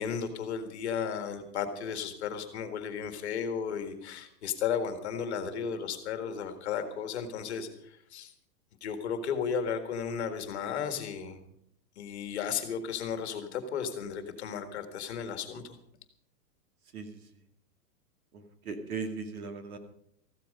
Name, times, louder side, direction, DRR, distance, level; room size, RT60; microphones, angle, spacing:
voice 1, 0.0-8.3 8.8-11.4 12.0-15.8, left 7 dB, 40° left, 8 dB, 1.9 m, -34 dB
voice 2, 18.3-19.8, right 4 dB, 60° right, 6 dB, 2.6 m, -38 dB
14.5 x 13.5 x 5.3 m, 0.71 s
hypercardioid pair, 180°, 48 cm